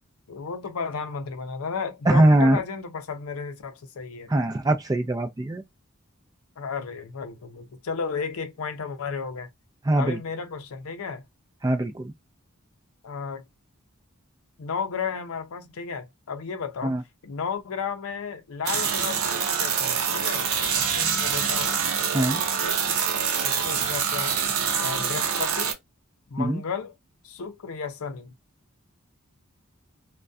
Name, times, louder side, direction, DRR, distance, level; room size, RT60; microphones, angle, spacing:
voice 1, 0.3-4.3 6.6-9.5 9.9-11.2 13.0-13.4 14.6-17.0 17.2-21.8 22.6-22.8 23.4-24.4 24.8-25.8 26.3-27.0 27.2-28.3, left 5 dB, 85° left, 0.5 m, -33 dB
voice 2, 2.1-2.6 4.3-5.6 9.9-10.2 11.6-12.1 16.8-17.0 22.1-22.4 26.4-26.6, right 1 dB, 15° right, 0.3 m, -21 dB
sound 1, 18.6-25.7, right 7 dB, 80° right, 0.6 m, -25 dB
2.5 x 2.2 x 2.3 m
head